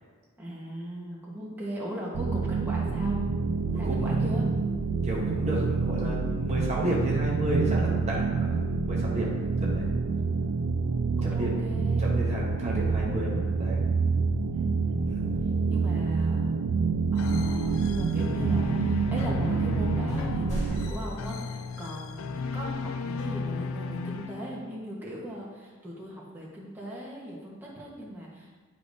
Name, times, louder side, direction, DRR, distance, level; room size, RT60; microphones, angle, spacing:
voice 1, 0.4-3.2 3.7-4.5 9.6-10.2 11.2-12.0 14.5-15.2 15.7-16.5 17.1-28.6, equal, 10° right, -5 dB, 1.2 m, -38 dB
sound 1, 2.1-20.9, right 4 dB, 75° right, 0.4 m, -27 dB
voice 2, 3.8-4.5 5.0-8.6 8.8-9.3 9.6-9.9 11.2-11.5 12.0-13.8 15.1-15.5, right 1 dB, 30° right, -4 dB, 1.0 m, -31 dB
sound 2, 17.2-24.8, left 4 dB, 65° left, 0.4 m, -35 dB
sound 3, 20.1-21.7 22.6-22.7, equal, 35° left, 1.8 m, -37 dB
10.0 x 4.9 x 2.6 m, 1.4 s
head